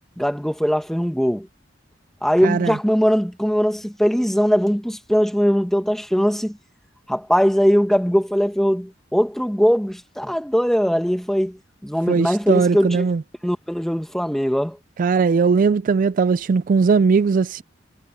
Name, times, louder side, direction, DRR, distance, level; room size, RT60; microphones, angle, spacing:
voice 1, 0.2-1.5 2.2-6.6 7.1-13.1 13.4-14.8, equal, ahead, 1.7 m, -20 dB
voice 2, 2.4-2.7 12.1-13.2 15.0-17.6, right 5 dB, 45° right, 0.3 m, -19 dB
head